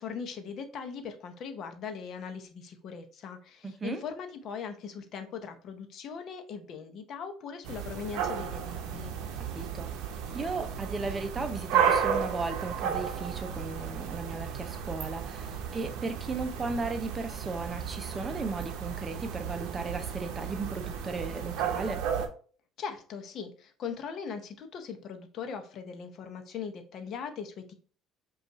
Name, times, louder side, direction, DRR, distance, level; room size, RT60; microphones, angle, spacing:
voice 1, 0.0-9.1 22.8-27.7, left 6 dB, 55° left, 0.7 m, -40 dB
voice 2, 3.6-4.0 9.5-9.9 10.3-22.1, right 3 dB, 20° right, 0.6 m, -36 dB
sound 1, 7.6-22.3, right 7 dB, 80° right, 0.6 m, -33 dB
5.1 x 2.4 x 3.0 m
cardioid pair, 125°, 0 cm